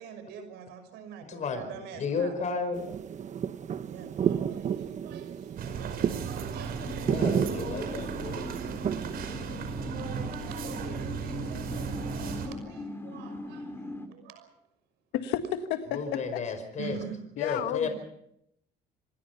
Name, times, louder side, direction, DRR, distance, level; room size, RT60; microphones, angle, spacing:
voice 1, 0.0-2.3 3.8-6.9 10.4-11.9 12.2-14.5 16.8-17.1, right 8 dB, 85° right, 6.0 m, -45 dB
voice 2, 1.2-2.8 7.0-8.5 15.9-17.0 17.4-17.9, left 5 dB, 45° left, 4.9 m, -33 dB
sound 1, 2.7-9.8, right 8 dB, 45° right, 1.2 m, -32 dB
sound 2, 5.6-12.5, right 6 dB, 65° right, 5.3 m, -36 dB
sound 3, 6.7-14.1, left 1 dB, 15° left, 2.8 m, -40 dB
voice 3, 15.1-16.4 17.4-17.9, left 9 dB, 90° left, 1.7 m, -31 dB
27.0 x 20.5 x 5.9 m
cardioid pair, 110°, 17 cm